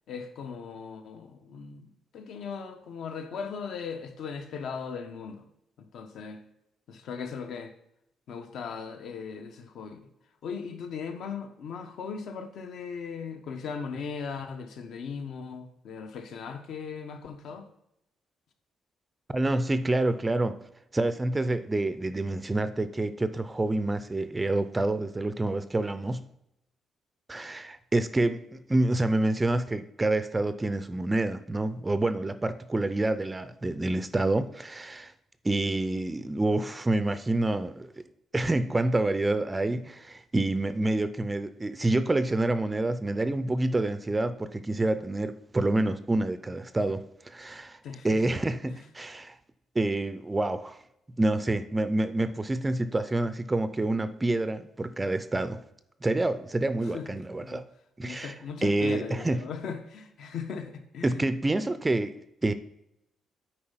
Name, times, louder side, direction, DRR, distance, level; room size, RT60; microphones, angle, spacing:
voice 1, 0.1-5.4 5.8-6.4 6.9-7.7 8.3-10.0 10.4-17.7 47.8-48.2 48.7-48.8 56.9-57.6 58.0-61.2, left 6 dB, 70° left, 6 dB, 1.0 m, -38 dB
voice 2, 19.3-20.6 20.9-26.2 27.3-35.1 35.4-38.0 38.3-47.8 48.0-49.4 49.8-50.8 51.2-55.6 56.0-57.6 58.0-58.3 58.6-59.4 61.0-62.5, right 2 dB, 15° right, 12 dB, 0.4 m, -27 dB
8.7 x 4.6 x 5.6 m, 0.81 s
cardioid pair, 125°, 0 cm